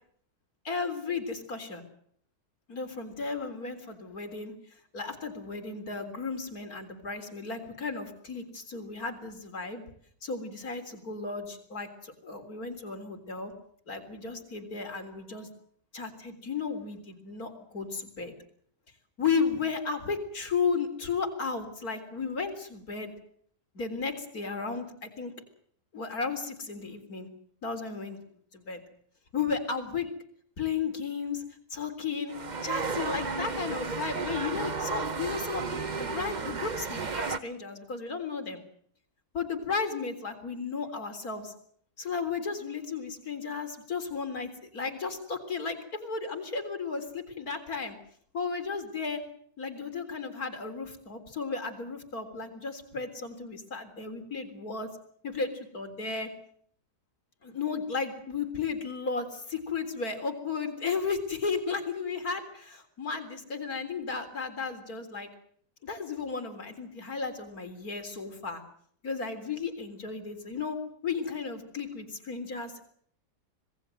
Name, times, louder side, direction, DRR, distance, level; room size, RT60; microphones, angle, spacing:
voice 1, 0.6-1.8 2.7-4.5 4.9-9.8 10.2-13.5 13.9-15.5 15.9-18.3 19.2-23.1 23.7-25.3 25.9-27.3 27.6-28.2 28.5-28.8 29.3-30.1 30.6-31.4 31.7-32.4 32.6-38.6 39.3-41.5 42.0-48.0 48.3-49.2 49.6-54.9 55.2-56.3 57.4-65.3 65.8-68.6 69.0-70.8 71.0-72.8, left 5 dB, 65° left, 6 dB, 4.3 m, -34 dB
sound 1, 32.3-37.4, right 4 dB, 30° right, 1.1 m, -33 dB
26.5 x 19.5 x 7.9 m, 0.63 s
omnidirectional pair, 1.7 m